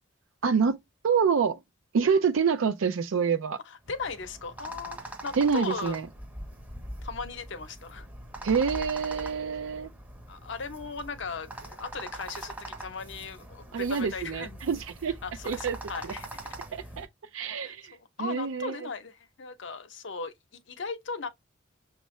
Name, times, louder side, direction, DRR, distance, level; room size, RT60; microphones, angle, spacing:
voice 1, 0.4-0.8 1.0-1.6 1.9-3.6 5.4-6.1 8.4-9.9 13.7-15.2 15.5-15.8 16.7-17.1 17.3-18.8, right 6 dB, 85° right, 0.4 m, -26 dB
voice 2, 3.6-6.0 7.0-8.1 10.3-14.8 15.2-16.3 16.8-16.9 17.6-21.3, left 4 dB, 65° left, 0.7 m, -38 dB
sound 1, 3.8-17.1, right 1 dB, 10° right, 0.6 m, -42 dB
6.3 x 2.4 x 3.0 m
head